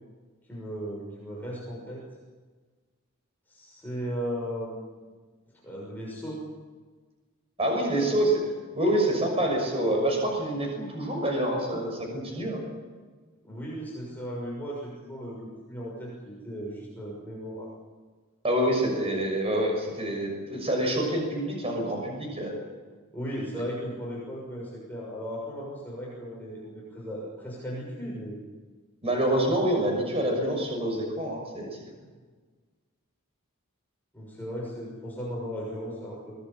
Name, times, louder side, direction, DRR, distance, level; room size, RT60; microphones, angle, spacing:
voice 1, 0.5-2.0 3.5-4.8 5.6-6.4 13.4-17.7 23.1-28.4 34.1-36.4, equal, 10° left, -5 dB, 6.6 m, -36 dB
voice 2, 7.6-8.4 8.8-12.6 18.4-22.6 23.5-23.6 29.0-31.8, right 1 dB, 30° right, 1 dB, 6.3 m, -27 dB
23.5 x 19.5 x 8.8 m, 1.4 s
head